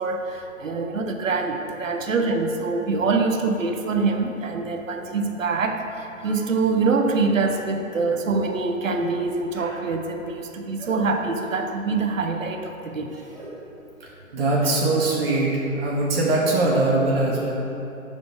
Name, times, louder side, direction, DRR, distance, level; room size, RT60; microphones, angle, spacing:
voice 1, 0.0-13.1, right 4 dB, 65° right, 4 dB, 0.7 m, -25 dB
sound 1, 7.9-8.1 8.9-9.2 9.5-9.8 10.8-11.0 11.4-11.6 13.3-13.5, right 2 dB, 10° right, 0.9 m, -41 dB
voice 2, 14.3-17.5, right 2 dB, 45° right, -4 dB, 1.1 m, -21 dB
5.3 x 3.8 x 5.4 m, 2.9 s
figure-of-eight pair, 135°, 42 cm